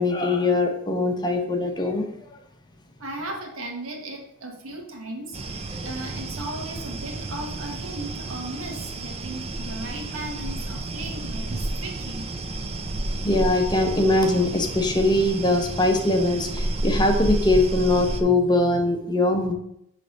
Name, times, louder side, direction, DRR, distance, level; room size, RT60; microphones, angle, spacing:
voice 1, 0.0-2.1 5.7-5.9 13.2-19.5, left 2 dB, 20° left, 4 dB, 0.8 m, -22 dB
voice 2, 3.0-12.3, right 2 dB, 85° right, 1 dB, 1.3 m, -36 dB
sound 1, 5.3-18.2, right 2 dB, 30° right, 0.5 m, -31 dB
6.6 x 3.3 x 5.2 m, 0.77 s
head